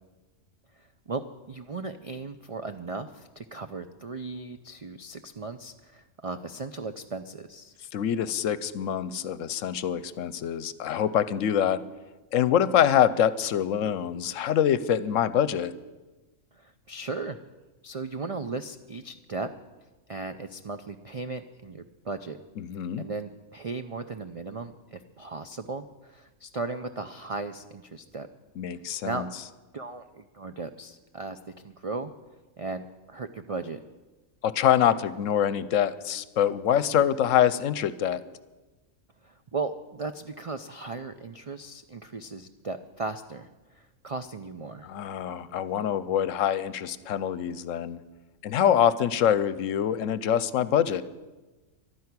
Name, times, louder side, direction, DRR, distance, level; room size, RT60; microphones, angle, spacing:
voice 1, 0.8-7.7 16.5-17.4 17.8-19.5 20.1-22.4 23.0-28.3 29.0-29.3 29.7-31.4 31.6-32.1 32.6-33.8 39.2-43.5 43.7-44.9, right 3 dB, 60° right, 8 dB, 0.3 m, -36 dB
voice 2, 7.9-11.8 12.3-15.7 22.6-23.1 28.6-29.3 34.4-38.2 44.8-48.0 48.4-51.0, left 9 dB, 75° left, 15 dB, 1.0 m, -25 dB
12.0 x 10.5 x 9.6 m, 1.2 s
omnidirectional pair, 1.4 m